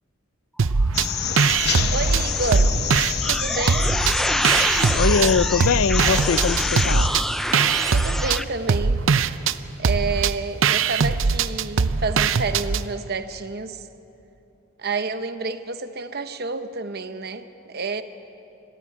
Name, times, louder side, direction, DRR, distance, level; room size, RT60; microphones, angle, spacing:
sound 1, 0.6-1.1 1.4-3.4 3.7-5.3 5.6-12.9, right 5 dB, 75° right, 0.6 m, -21 dB
sound 2, 0.8-8.4, equal, ahead, 0.5 m, -27 dB
sound 3, 0.9-7.1, left 8 dB, 55° left, 1.1 m, -28 dB
voice 1, 1.9-2.8 3.2-4.0 7.9-9.0 9.8-13.9 14.8-18.0, right 4 dB, 50° right, 9 dB, 1.0 m, -29 dB
voice 2, 4.9-7.1, left 5 dB, 80° left, 18 dB, 0.5 m, -22 dB
29.5 x 14.5 x 8.6 m, 2.9 s
head